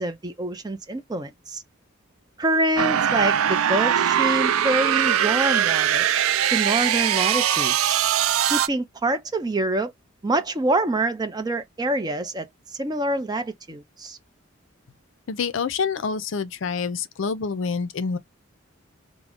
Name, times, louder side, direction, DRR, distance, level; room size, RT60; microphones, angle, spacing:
voice 1, 0.0-1.6 2.4-6.1 6.5-8.0 8.5-9.9 10.2-12.5 12.8-14.2, right 2 dB, 20° right, 0.5 m, -26 dB
sound 1, 2.8-8.7, right 9 dB, 90° right, 0.4 m, -21 dB
voice 2, 15.3-18.2, left 5 dB, 65° left, 0.5 m, -27 dB
3.7 x 2.1 x 3.5 m
head